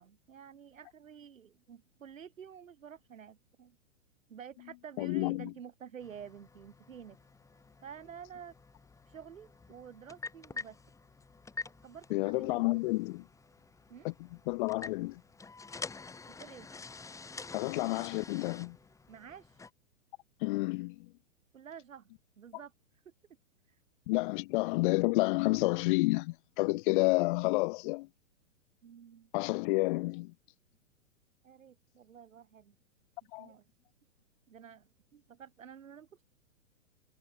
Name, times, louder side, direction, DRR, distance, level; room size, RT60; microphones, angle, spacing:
voice 1, 0.0-3.8 4.3-7.2 7.8-8.5 9.1-10.8 11.8-12.8 13.9-14.1 16.3-16.7 19.1-19.6 21.5-22.1 22.4-22.7 23.7-23.8 28.8-29.3 31.4-32.8 33.4-33.6 34.5-36.2, right 8 dB, 75° right, 4.2 m, -50 dB
voice 2, 5.0-5.5 12.1-13.2 14.0-14.1 14.5-15.2 17.5-18.8 20.4-21.1 24.1-28.1 29.3-30.3 33.3-33.5, left 24 dB, 40° left, 1.0 m, -30 dB
sound 1, 6.0-19.7, left 4 dB, 10° left, 1.6 m, -48 dB
hypercardioid pair, 120°, 39 cm